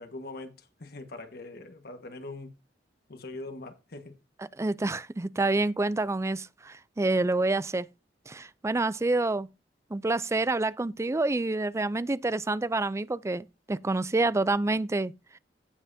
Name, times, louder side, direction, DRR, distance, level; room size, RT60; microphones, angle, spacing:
voice 1, 0.0-2.5 3.1-4.2, left 2 dB, 60° left, 1.5 m, -42 dB
voice 2, 4.6-7.9 8.3-9.5 9.9-15.1, right 2 dB, 15° right, 0.4 m, -27 dB
16.5 x 5.6 x 2.7 m
head